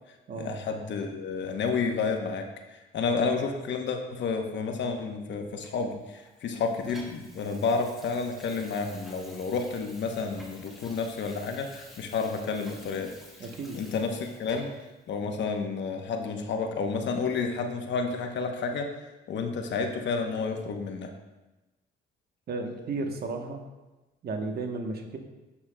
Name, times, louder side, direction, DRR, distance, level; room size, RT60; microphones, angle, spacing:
voice 1, 0.4-13.1 13.7-14.7 15.1-18.9 19.3-21.1, left 4 dB, 65° left, 4 dB, 0.9 m, -30 dB
Water tap faucet / Sink (filling or washing), 5.6-14.9 15.4-15.6, equal, ahead, 1.5 m, -51 dB
voice 2, 13.4-13.8 22.5-23.6 24.2-25.2, right 3 dB, 50° right, 4 dB, 1.0 m, -33 dB
8.4 x 7.3 x 2.2 m, 1.1 s
cardioid pair, 90°, 20 cm